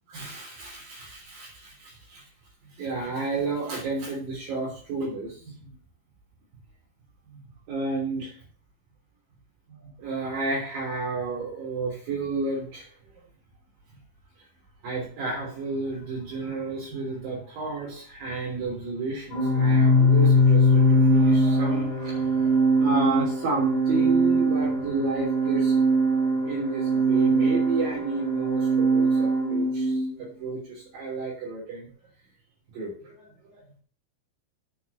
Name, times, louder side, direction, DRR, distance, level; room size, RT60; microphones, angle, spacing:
voice 1, 0.1-2.2 2.8-5.6 7.3-7.4 7.7-8.4 9.8-12.9 14.8-22.5 22.8-25.8 26.5-31.9 32.7-33.3 33.5-33.7, right 3 dB, 70° right, -6 dB, 5.3 m, -31 dB
Organ, 19.3-30.1, right 1 dB, 10° left, 3.0 m, -21 dB
8.9 x 7.0 x 8.1 m, 0.44 s
omnidirectional pair, 4.1 m